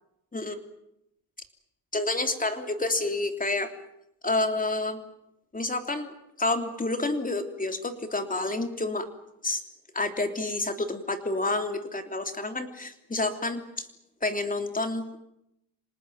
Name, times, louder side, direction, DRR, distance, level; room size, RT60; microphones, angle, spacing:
voice 1, 1.9-3.7 4.2-5.0 5.5-9.1 9.4-9.6 9.9-13.6 14.2-15.2, left 2 dB, 15° left, 7 dB, 3.3 m, -29 dB
26.5 x 19.0 x 9.3 m, 0.81 s
cardioid pair, 110°, 47 cm